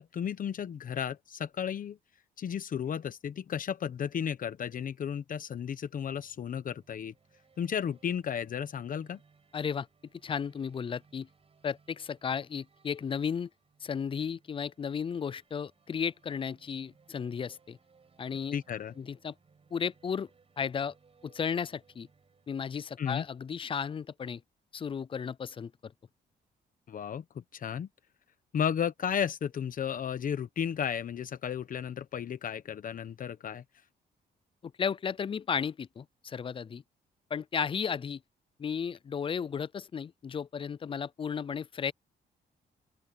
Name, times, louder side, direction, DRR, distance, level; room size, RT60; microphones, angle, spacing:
voice 1, 0.0-2.0 2.4-7.1 7.6-9.2 18.5-18.9 23.0-23.2 26.9-27.9 28.5-33.6, left 8 dB, 50° left, 1.0 m, -34 dB
sound 1, 5.9-23.7, right 5 dB, 35° right, 6.5 m, -65 dB
voice 2, 9.5-9.9 10.2-11.3 11.6-13.5 13.8-17.8 18.2-18.6 19.0-19.3 19.7-20.3 20.6-20.9 21.2-22.1 22.5-24.4 24.7-25.9 34.6-36.8 37.3-38.2 38.6-41.9, left 7 dB, 30° left, 0.4 m, -34 dB
open air
cardioid pair, 115°, 18 cm